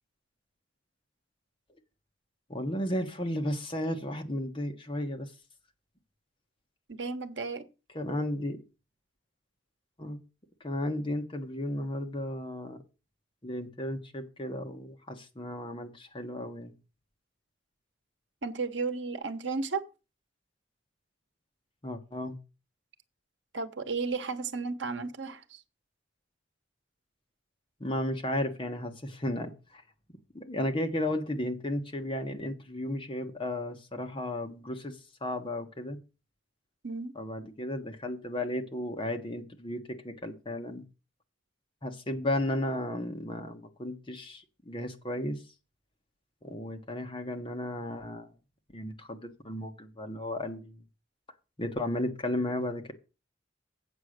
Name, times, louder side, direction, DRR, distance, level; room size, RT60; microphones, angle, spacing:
voice 1, 2.5-5.3 7.9-8.6 10.0-10.2 10.6-12.8 13.4-16.7 21.8-22.4 27.8-29.8 30.3-36.0 37.1-40.8 41.8-45.4 46.4-48.3 48.7-50.8 51.6-52.9, left 1 dB, 25° left, 1.3 m, -34 dB
voice 2, 6.9-7.6 18.4-19.8 23.5-25.6 36.8-37.1, right 4 dB, 70° right, 1.0 m, -33 dB
8.3 x 6.4 x 6.5 m
head